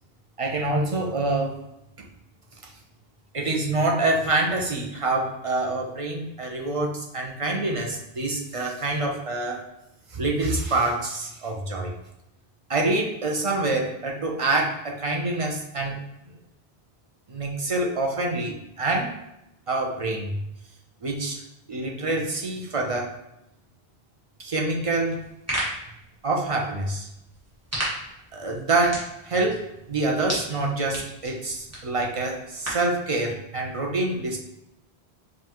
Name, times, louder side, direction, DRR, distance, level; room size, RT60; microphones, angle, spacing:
voice 1, 0.4-1.5 3.3-9.6 10.1-11.9 12.7-16.0 17.3-19.1 19.7-20.3 21.0-21.4 21.7-23.1 24.4-25.2 26.2-27.1 28.3-29.6 29.9-34.4, right 2 dB, 40° right, -1 dB, 0.5 m, -26 dB
sound 1, 25.1-33.0, right 1 dB, 15° right, 1.3 m, -36 dB
5.2 x 2.5 x 2.9 m, 0.85 s
omnidirectional pair, 1.1 m